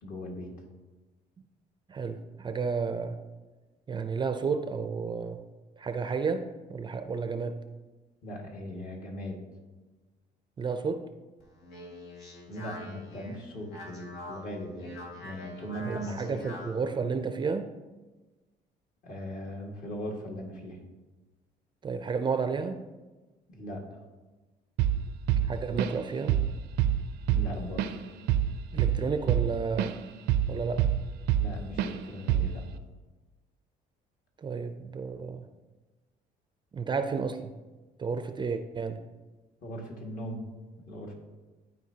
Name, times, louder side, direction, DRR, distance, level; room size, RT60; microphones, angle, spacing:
voice 1, 0.0-0.5 8.2-9.4 12.5-14.9 15.2-16.5 19.0-20.8 23.5-24.0 27.3-27.9 31.3-32.6 39.6-40.5 40.9-41.1, equal, 55° left, 0 dB, 1.7 m, -39 dB
voice 2, 1.9-3.2 3.9-5.4 5.8-7.6 10.6-11.1 15.8-17.7 21.8-22.9 25.4-26.4 28.7-30.0 30.5-30.8 34.4-35.5 36.7-37.5 38.0-39.0, right 5 dB, 25° right, 8 dB, 0.4 m, -32 dB
Speech, 11.4-16.8, left 2 dB, 85° left, 1.9 m, -44 dB
Drum kit / Drum, 24.8-25.0 25.3-26.0 26.3-26.5 26.8-30.0 30.3-31.5 31.8-32.0 32.3-32.6, right 11 dB, 85° right, 0.5 m, -26 dB
12.0 x 4.5 x 2.8 m, 1.2 s
cardioid pair, 110°, 17 cm